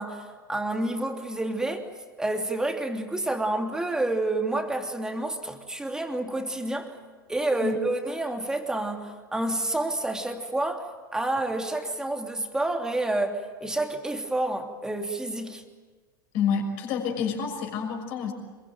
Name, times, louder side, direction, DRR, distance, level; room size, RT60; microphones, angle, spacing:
voice 1, 0.0-1.9 2.2-7.0 7.3-15.6, right 2 dB, 5° right, 4 dB, 3.1 m, -29 dB
voice 2, 16.3-18.3, left 6 dB, 45° left, 3 dB, 6.3 m, -28 dB
27.0 x 22.5 x 9.3 m, 1.4 s
figure-of-eight pair, 90°, 11 cm